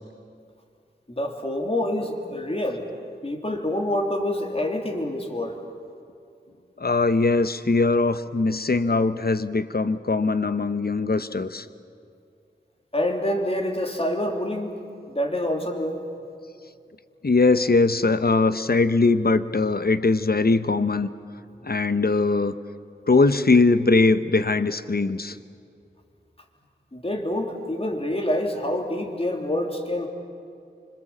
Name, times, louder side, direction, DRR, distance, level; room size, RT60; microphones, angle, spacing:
voice 1, 1.1-2.9 3.2-5.6 12.9-14.7 15.1-16.0 26.9-30.1, left 1 dB, 30° left, 2 dB, 3.3 m, -27 dB
voice 2, 6.8-11.7 17.2-21.1 21.6-22.5 23.1-25.4, left 3 dB, 55° left, 12 dB, 1.0 m, -21 dB
26.0 x 25.5 x 7.5 m, 2.4 s
wide cardioid pair, 50°, 19 cm